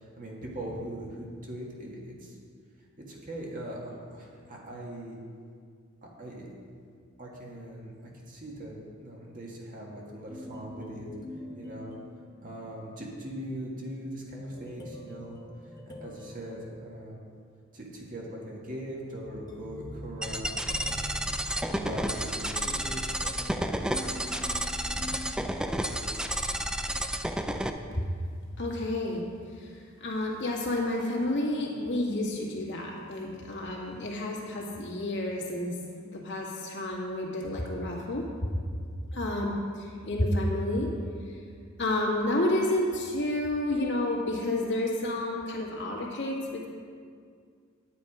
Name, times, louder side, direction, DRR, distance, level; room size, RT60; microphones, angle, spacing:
voice 1, 0.0-2.4 3.1-5.2 6.0-6.5 7.2-11.1 11.6-12.0 12.4-15.4 15.9-17.2 17.7-21.2 21.7-23.7, right 1 dB, 40° right, -3 dB, 1.9 m, -40 dB
sound 1, 10.3-12.9 14.5-17.5 18.9-26.3, left 1 dB, 20° left, 1.1 m, -46 dB
sound 2, 20.2-27.7, right 1 dB, 5° right, 0.4 m, -31 dB
voice 2, 28.6-29.2 29.5-29.7 30.0-35.8 36.0-38.3 38.5-38.6 39.1-40.9 41.8-46.7, left 1 dB, 60° left, -2 dB, 2.0 m, -30 dB
9.6 x 9.3 x 5.0 m, 2.1 s
head